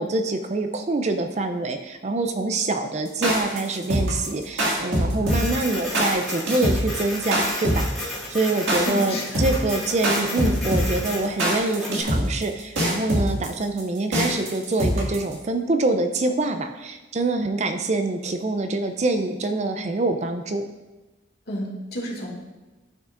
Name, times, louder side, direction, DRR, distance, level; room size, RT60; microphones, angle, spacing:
voice 1, 0.0-20.6, right 2 dB, 35° right, 7 dB, 0.4 m, -25 dB
sound 1, 3.1-15.3, equal, 70° right, 2.0 m, -23 dB
Printer, 5.2-12.0, left 1 dB, ahead, 2.2 m, -34 dB
voice 2, 8.9-9.4 21.5-22.3, equal, 50° left, -3 dB, 2.1 m, -30 dB
11.5 x 6.4 x 2.5 m, 1.1 s
head